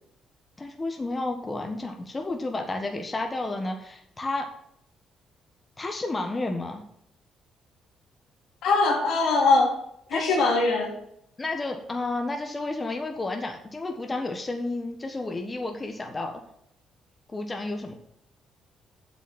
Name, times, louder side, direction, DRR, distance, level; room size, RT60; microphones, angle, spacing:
voice 1, 0.6-4.5 5.8-6.8 10.1-10.5 11.4-16.4 17.3-17.9, left 2 dB, 25° left, 4 dB, 1.4 m, -31 dB
voice 2, 8.6-9.7 10.1-10.9, left 3 dB, 85° left, 0 dB, 3.1 m, -21 dB
8.0 x 6.2 x 7.4 m, 0.73 s
cardioid pair, 90°, 0 cm